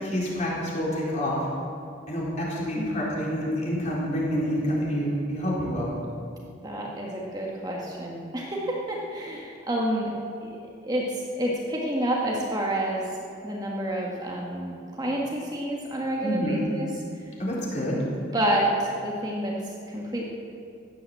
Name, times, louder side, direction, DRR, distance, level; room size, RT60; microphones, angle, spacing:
voice 1, 0.0-1.4 2.1-5.9 16.2-16.6 17.4-18.0, equal, 35° left, -5 dB, 4.3 m, -28 dB
voice 2, 2.7-3.1 6.6-10.1 10.4-10.5 10.8-17.3 18.3-20.2, right 1 dB, 20° right, -2 dB, 1.6 m, -29 dB
16.0 x 11.5 x 7.8 m, 2.4 s
head